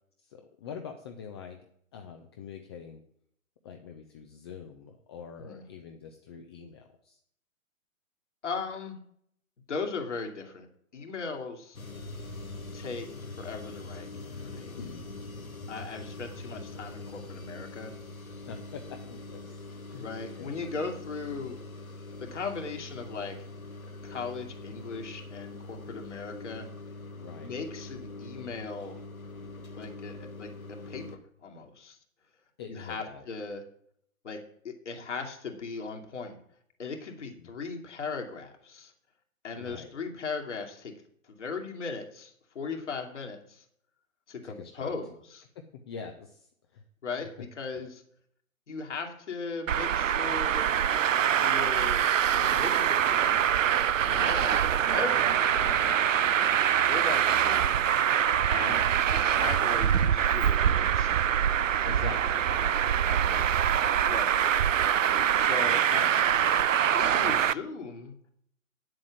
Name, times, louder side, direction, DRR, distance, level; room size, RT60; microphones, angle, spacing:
voice 1, 0.2-3.0 3.6-7.2 14.8-15.0 18.5-19.6 19.9-20.1 20.4-20.5 27.2-27.5 32.6-33.2 39.5-39.9 44.4-44.9 45.5-46.8 54.1-54.3 58.5-58.8 60.0-60.1 61.8-63.8 64.6-64.8 65.6-66.5, left 6 dB, 20° left, 4 dB, 0.6 m, -44 dB
voice 2, 8.4-9.0 9.7-10.7 10.9-11.8 12.7-14.8 15.7-17.9 19.9-21.6 22.2-23.4 24.0-26.7 27.4-29.0 29.7-32.0 32.7-33.6 34.2-36.4 36.8-38.9 39.4-43.6 44.3-45.5 47.0-48.0 48.7-50.6 51.4-53.4 54.0-57.8 58.5-61.7 64.1-64.4 65.3-66.1 66.9-68.1, left 4 dB, 60° left, 3 dB, 2.5 m, -38 dB
sound 1, 11.7-31.2, left 2 dB, 85° left, 1.5 m, -43 dB
Traffic noise roadway noise, 49.7-67.5, right 9 dB, 70° right, 0.5 m, -24 dB
8.8 x 7.7 x 7.6 m, 0.68 s
figure-of-eight pair, 125°, 41 cm